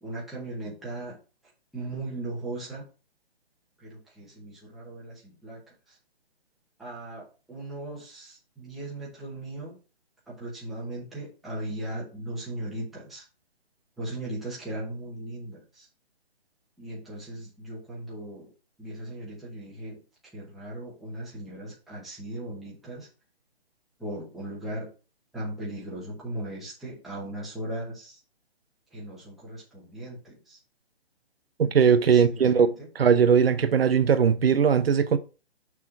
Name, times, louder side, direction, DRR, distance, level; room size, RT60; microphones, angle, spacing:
voice 1, 0.0-1.2 1.7-2.8 3.8-6.0 6.8-9.8 10.3-13.2 14.0-15.9 16.8-18.5 18.8-20.0 20.3-23.1 24.0-24.9 25.3-28.2 28.9-30.6 31.6-32.9, right 1 dB, ahead, 0.8 m, -38 dB
voice 2, 31.7-32.7 33.0-35.2, right 7 dB, 65° right, 0.7 m, -20 dB
6.2 x 3.6 x 5.8 m
hypercardioid pair, 165°, 32 cm